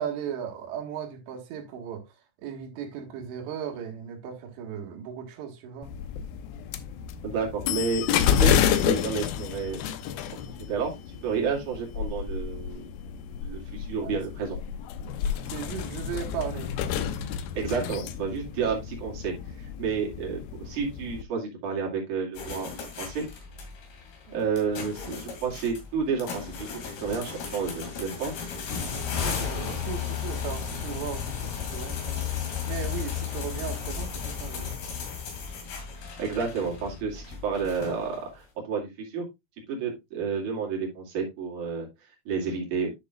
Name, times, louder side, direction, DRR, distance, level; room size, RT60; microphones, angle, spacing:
voice 1, 0.0-2.0 2.4-5.9 14.0-14.2 15.5-17.1 28.7-32.4 32.7-35.0, right 8 dB, 75° right, 3.8 m, -37 dB
sound 1, 5.8-21.2, left 9 dB, 90° left, 2.1 m, -30 dB
voice 2, 7.2-9.8 10.7-12.8 13.4-14.6 17.6-22.7 23.0-23.2 24.3-26.7 27.0-28.3 36.2-39.3 39.7-41.9 42.3-42.9, right 5 dB, 50° right, 3.5 m, -30 dB
sound 2, 22.3-38.3, left 7 dB, 60° left, 3.9 m, -35 dB
11.0 x 6.5 x 2.4 m
omnidirectional pair, 5.1 m